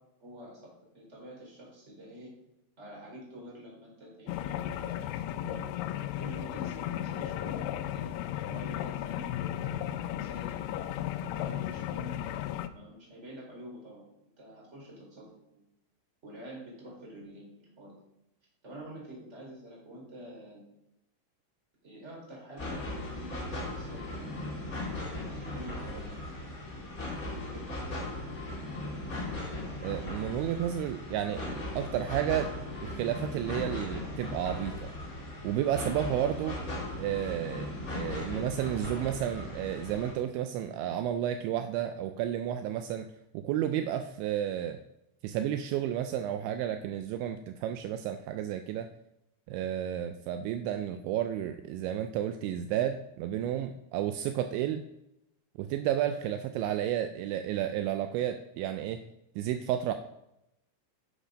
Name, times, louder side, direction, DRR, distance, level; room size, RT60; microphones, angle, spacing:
voice 1, 0.2-2.3 2.8-5.1 5.4-5.6 6.2-10.5 11.2-12.2 12.7-14.0 14.4-15.6 16.2-17.9 18.6-20.7 21.8-24.5 25.3-26.2 27.3-27.9, equal, 15° right, -3 dB, 4.0 m, -47 dB
sound 1, 4.3-12.7, left 11 dB, 90° left, 2.4 m, -35 dB
sound 2, 22.6-40.1, left 2 dB, 40° left, 1.3 m, -38 dB
voice 2, 29.8-32.5 32.8-34.7 35.4-36.6 37.0-43.1 43.3-44.8 45.2-48.9 49.5-54.8 55.6-59.0 59.4-59.9, right 11 dB, 85° right, 8 dB, 2.8 m, -32 dB
10.0 x 8.0 x 5.2 m, 0.86 s
omnidirectional pair, 5.5 m